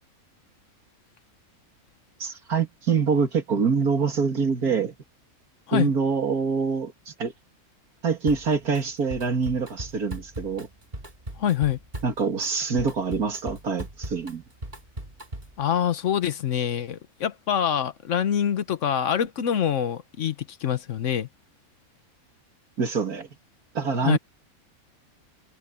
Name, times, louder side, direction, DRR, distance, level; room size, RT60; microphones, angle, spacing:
voice 1, 2.2-4.9 5.7-7.3 8.0-10.7 12.0-14.4 22.8-23.3 23.7-24.2, right 5 dB, 90° right, 2.9 m, -25 dB
Drum kit, 8.3-8.8 9.1-15.6, right 1 dB, 30° right, 3.1 m, -39 dB
voice 2, 11.4-11.8 15.6-21.3 24.0-24.2, left 9 dB, 60° left, 1.2 m, -25 dB
omnidirectional pair, 1.5 m